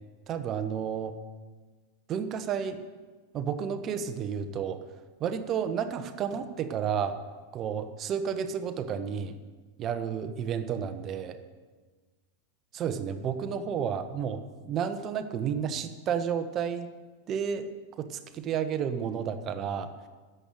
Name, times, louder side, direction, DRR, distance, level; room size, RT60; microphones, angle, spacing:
voice 1, 0.3-1.1 2.1-2.8 3.3-4.8 5.2-7.2 7.5-9.3 9.8-11.4 12.7-16.9 17.3-17.7 18.0-19.9, right 7 dB, 30° right, 9 dB, 1.3 m, -31 dB
13.5 x 8.3 x 9.2 m, 1.4 s
figure-of-eight pair, 90°, 0 cm